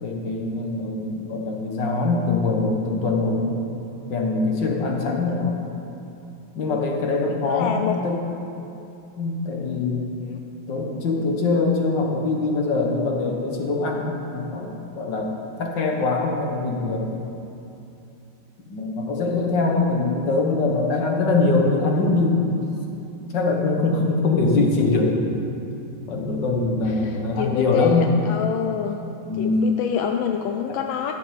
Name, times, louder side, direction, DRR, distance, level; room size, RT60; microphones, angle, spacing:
voice 1, 0.0-3.6 4.1-5.6 6.6-8.2 9.2-10.1 10.7-15.3 15.6-17.1 18.7-22.5 23.3-25.5 26.1-28.1 29.3-29.8, left 3 dB, 65° left, 0 dB, 2.1 m, -23 dB
voice 2, 7.5-8.0 10.2-10.4 20.0-20.1 26.8-29.0 29.4-31.1, left 9 dB, 85° left, 5 dB, 1.4 m, -27 dB
12.5 x 7.0 x 7.6 m, 2.9 s
omnidirectional pair, 2.1 m